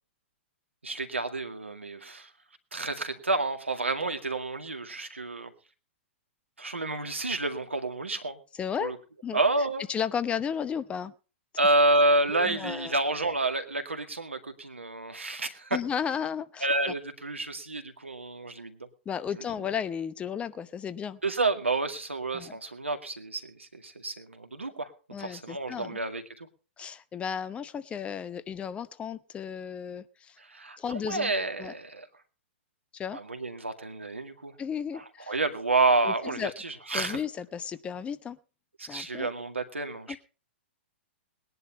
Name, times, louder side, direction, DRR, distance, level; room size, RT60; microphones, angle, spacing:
voice 1, 0.8-2.3 2.7-5.5 6.6-8.4 8.8-9.0 9.3-9.9 11.6-15.8 16.6-18.9 21.2-24.9 25.2-26.5 30.4-32.1 33.1-34.6 34.9-37.2 38.8-40.2, right 2 dB, 85° right, 7 dB, 2.1 m, -29 dB
voice 2, 8.6-8.9 9.2-9.4 9.9-11.1 12.3-12.9 15.7-16.9 19.1-21.2 22.3-22.5 25.1-26.0 26.8-30.4 30.8-31.3 31.6-31.7 32.9-33.2 34.6-35.3 36.0-36.5 36.9-38.4 38.9-39.3 40.1-40.2, left 7 dB, 20° left, 14 dB, 0.8 m, -34 dB
20.0 x 10.5 x 4.2 m, 0.36 s
figure-of-eight pair, 115°, 6 cm